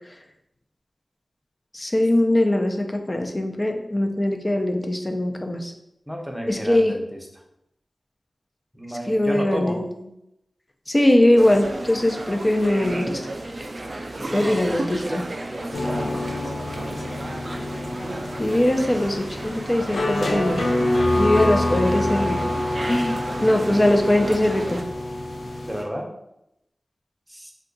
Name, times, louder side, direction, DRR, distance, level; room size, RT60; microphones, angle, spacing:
voice 1, 1.7-5.7 6.5-6.9 9.1-9.8 10.9-13.2 14.3-15.2 18.4-20.6 21.2-22.4 22.8-24.8, left 1 dB, 30° left, 4 dB, 0.4 m, -21 dB
voice 2, 6.1-7.4 8.7-9.8 14.1-14.7 15.4-16.2 25.6-26.1 27.3-27.5, equal, 10° right, 1 dB, 0.6 m, -33 dB
sound 1, 11.4-24.8, right 2 dB, 60° right, 0.4 m, -33 dB
sound 2, 15.7-25.8, left 1 dB, 90° left, 0.5 m, -27 dB
2.7 x 2.3 x 3.9 m, 0.82 s
wide cardioid pair, 55°, 0 cm